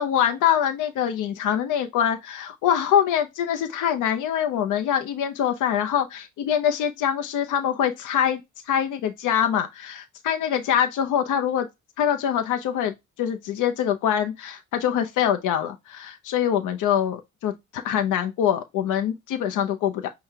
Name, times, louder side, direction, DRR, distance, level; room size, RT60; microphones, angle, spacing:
voice 1, 0.0-8.4 8.7-11.7 12.0-20.1, left 9 dB, 85° left, 0.7 m, -24 dB
5.6 x 2.3 x 3.4 m
cardioid pair, 90°, 30 cm